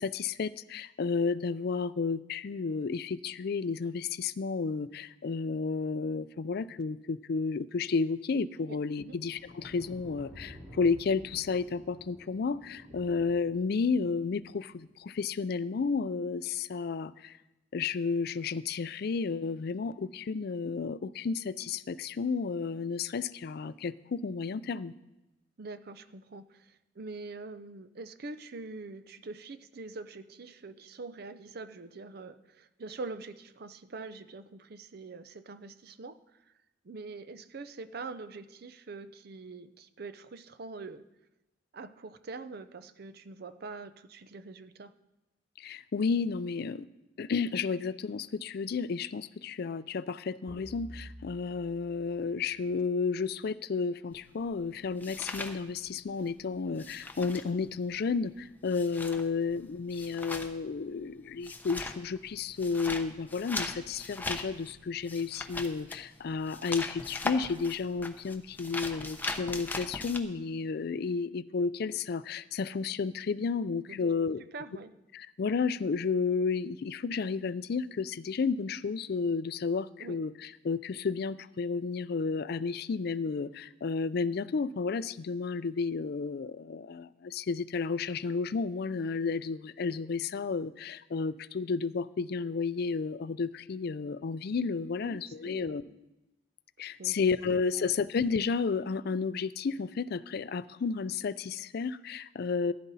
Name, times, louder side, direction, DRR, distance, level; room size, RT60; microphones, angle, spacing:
voice 1, 0.0-17.4 17.7-24.9 45.6-46.9 47.2-74.4 75.1-95.8 96.8-102.7, left 5 dB, 55° left, 16 dB, 0.4 m, -32 dB
voice 2, 8.7-9.2 25.6-36.5 36.8-41.1 41.7-44.9 73.9-74.1 74.5-74.9 80.0-80.2 95.0-96.0 96.8-97.2 97.7-97.9, right 3 dB, 55° right, 12 dB, 0.6 m, -44 dB
sound 1, 9.1-14.6 15.8-16.1, equal, 30° right, 4.3 m, -52 dB
sound 2, 50.5-53.1, equal, 15° right, 5.5 m, -50 dB
sound 3, 54.1-56.3 56.5-70.2, left 2 dB, 10° left, 0.7 m, -39 dB
14.5 x 10.5 x 4.1 m, 0.98 s
head